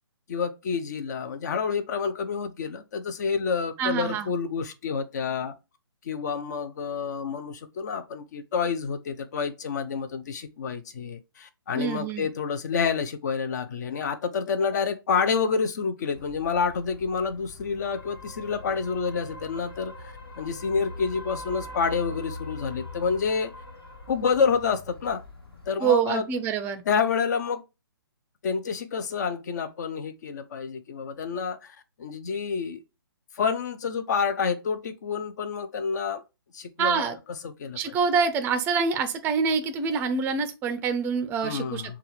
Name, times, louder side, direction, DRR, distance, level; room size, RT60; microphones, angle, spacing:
voice 1, 0.3-5.5 6.0-23.5 24.1-25.2 25.7-26.3 26.8-27.6 28.4-32.8 33.3-36.2 36.5-37.2 37.4-38.0 41.4-42.0, left 5 dB, 45° left, 0.6 m, -28 dB
voice 2, 3.8-4.3 11.7-12.3 25.8-26.8 36.8-37.2 37.8-42.0, right 6 dB, 15° right, 0.5 m, -26 dB
sound 1, 16.1-25.7, left 2 dB, 70° left, 1.5 m, -42 dB
6.7 x 2.4 x 3.1 m
figure-of-eight pair, 140°, 13 cm